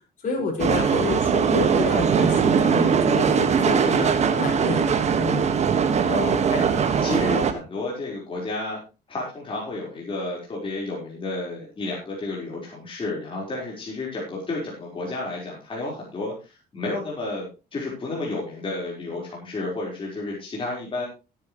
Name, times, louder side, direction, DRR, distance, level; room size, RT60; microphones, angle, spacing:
voice 1, 0.2-4.9 5.2-5.4, left 4 dB, 50° left, -2 dB, 6.1 m, -29 dB
sound 1, 0.6-7.5, right 6 dB, 40° right, 1.7 m, -21 dB
voice 2, 6.0-8.8 9.1-17.5 17.7-21.0, left 2 dB, 30° left, -3 dB, 4.6 m, -31 dB
17.0 x 9.5 x 3.2 m, 0.30 s
cardioid pair, 110°, 17 cm